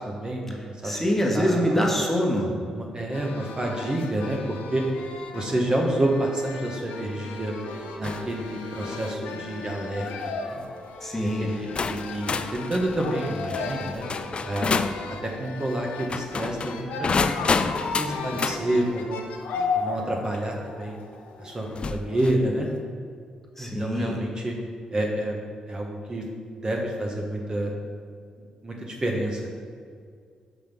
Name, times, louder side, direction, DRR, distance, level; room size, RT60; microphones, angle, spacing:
voice 1, 0.0-1.0 1.3-1.8 2.7-4.8 5.3-7.5 8.0-10.6 11.2-14.0 14.4-14.7 15.2-17.4 17.9-19.2 19.7-21.0 21.4-22.7 23.6-24.5 24.9-25.4 25.7-26.3 26.6-27.7 28.6-29.5, right 1 dB, 30° right, 0 dB, 1.2 m, -29 dB
voice 2, 0.8-2.5 11.0-11.5 23.6-24.2, equal, 10° left, -1 dB, 1.4 m, -24 dB
sound 1, 3.1-22.8, left 4 dB, 90° left, 0.7 m, -35 dB
sound 2, 8.0-8.3 8.8-9.2 10.0-10.3 11.1-11.2 11.8-15.0 16.0-18.6 20.3-20.4 21.7-22.4, left 4 dB, 45° left, 0.4 m, -29 dB
6.0 x 5.3 x 5.3 m, 2.1 s
supercardioid pair, 60°, 2 cm